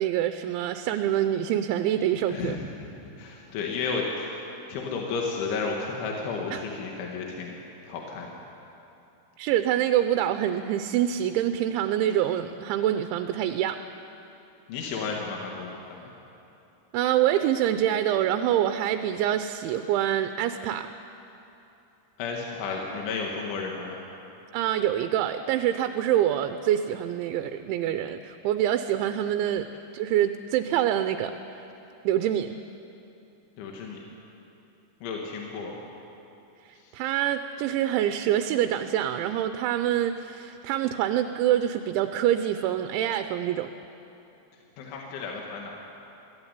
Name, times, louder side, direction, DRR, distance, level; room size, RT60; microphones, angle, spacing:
voice 1, 0.0-2.6 6.5-6.6 9.4-13.8 16.9-20.9 24.5-29.7 29.9-31.6 32.0-32.6 36.7-43.7, right 11 dB, 80° right, 8 dB, 3.0 m, -26 dB
voice 2, 2.3-4.4 4.7-7.6 7.8-8.3 14.7-16.1 22.2-24.0 33.6-34.0 35.0-35.8 36.8-36.9 44.8-45.7, left 4 dB, 75° left, 0 dB, 4.1 m, -33 dB
22.0 x 15.5 x 9.8 m, 2.9 s
omnidirectional pair, 5.5 m